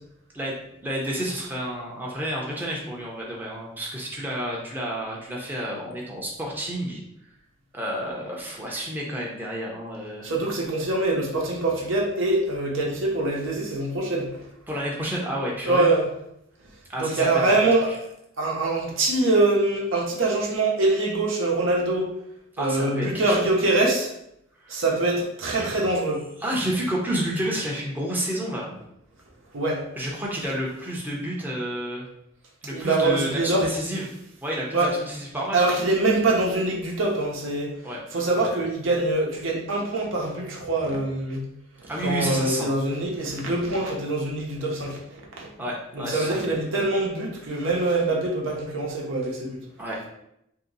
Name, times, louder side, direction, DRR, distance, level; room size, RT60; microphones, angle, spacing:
voice 1, 0.3-7.0 7.7-10.3 14.7-15.9 16.9-17.7 22.5-23.5 24.6-24.8 25.5-25.9 26.4-28.7 30.0-32.0 32.6-34.0 34.4-35.8 37.8-38.0 38.4-38.5 41.9-42.7 45.6-46.4 49.8-50.0, equal, 10° right, -4 dB, 0.6 m, -30 dB
voice 2, 10.2-14.3 15.7-16.0 17.0-17.9 18.4-22.1 22.6-24.1 24.7-26.2 29.5-29.8 32.7-33.7 34.7-34.9 35.5-37.7 38.1-41.4 42.0-45.0 45.4-45.5 45.9-49.6, right 2 dB, 75° right, -1 dB, 0.9 m, -24 dB
3.0 x 2.8 x 4.0 m, 0.79 s
head